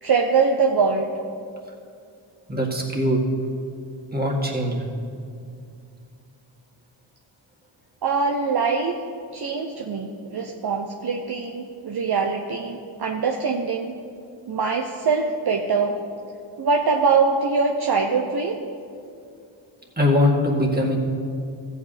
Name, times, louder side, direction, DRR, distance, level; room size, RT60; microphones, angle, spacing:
voice 1, 0.0-1.1 8.0-8.9 9.3-13.9 14.5-16.0 16.6-18.6, right 5 dB, 50° right, 2 dB, 0.8 m, -23 dB
voice 2, 2.5-3.2 4.1-4.8 20.0-21.0, left 1 dB, 20° right, -2 dB, 2.1 m, -21 dB
14.5 x 8.5 x 3.4 m, 2.4 s
cardioid pair, 45°, 50 cm